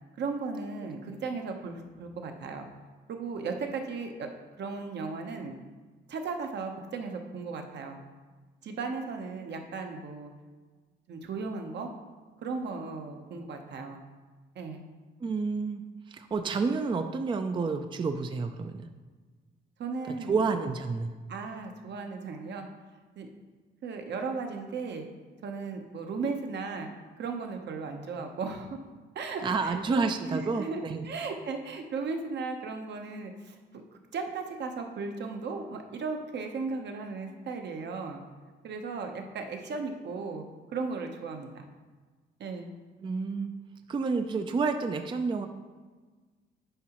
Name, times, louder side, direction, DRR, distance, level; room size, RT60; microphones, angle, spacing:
voice 1, 0.2-2.7 3.1-4.3 4.6-5.5 6.1-8.0 8.6-10.3 11.1-11.9 12.4-14.0 14.5-14.8 19.8-20.4 21.3-22.7 23.2-23.3 23.8-25.0 25.4-26.9 27.2-28.8 29.1-29.8 30.2-38.2 38.6-40.5 40.7-41.7 42.4-42.7, right 4 dB, 60° right, 4 dB, 0.9 m, -36 dB
voice 2, 15.2-15.8 16.1-18.9 20.1-21.1 29.4-31.1 43.0-43.5 43.9-45.5, right 4 dB, 25° right, 7 dB, 0.4 m, -29 dB
10.0 x 4.7 x 3.0 m, 1.4 s
cardioid pair, 90°, 20 cm